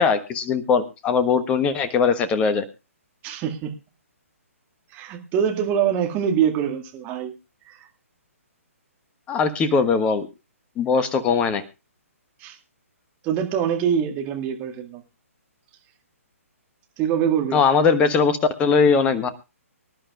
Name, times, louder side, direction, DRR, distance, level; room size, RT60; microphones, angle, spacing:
voice 1, 0.0-2.6 9.3-10.3 10.8-11.6 17.5-19.3, left 5 dB, 15° left, 12 dB, 1.2 m, -20 dB
voice 2, 3.2-3.7 4.9-7.3 7.7-7.8 12.4-12.6 13.2-15.0 17.0-17.6, right 8 dB, 20° right, 3 dB, 2.1 m, -24 dB
24.5 x 11.5 x 2.4 m, 0.29 s
figure-of-eight pair, 130°, 8 cm